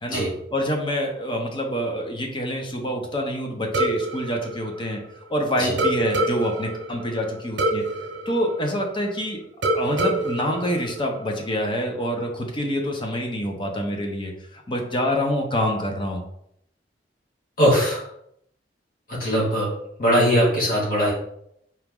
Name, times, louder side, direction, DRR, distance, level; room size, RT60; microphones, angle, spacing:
voice 1, 0.5-5.0 5.3-7.8 8.3-9.4 9.7-16.2, equal, 25° left, 2 dB, 0.8 m, -26 dB
sound 1, 3.7-5.3 5.8-9.2 9.6-11.6, right 2 dB, 85° right, 0.9 m, -27 dB
voice 2, 17.6-18.0 19.1-19.7 20.0-21.1, equal, 50° left, -5 dB, 1.9 m, -20 dB
4.5 x 3.0 x 3.7 m, 0.74 s
head